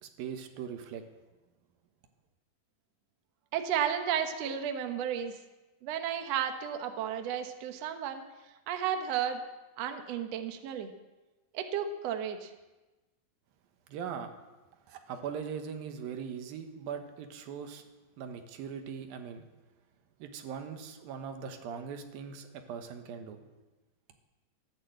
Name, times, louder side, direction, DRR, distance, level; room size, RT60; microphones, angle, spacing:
voice 1, 0.0-1.0 13.9-14.3 14.9-17.8 18.2-19.5 20.2-23.4, right 7 dB, 80° right, 6 dB, 3.0 m, -40 dB
voice 2, 3.5-5.4 5.8-8.2 8.7-9.4 9.8-10.9 11.5-12.5, right 8 dB, 60° right, 6 dB, 1.8 m, -33 dB
15.0 x 10.5 x 7.9 m, 1.1 s
omnidirectional pair, 4.2 m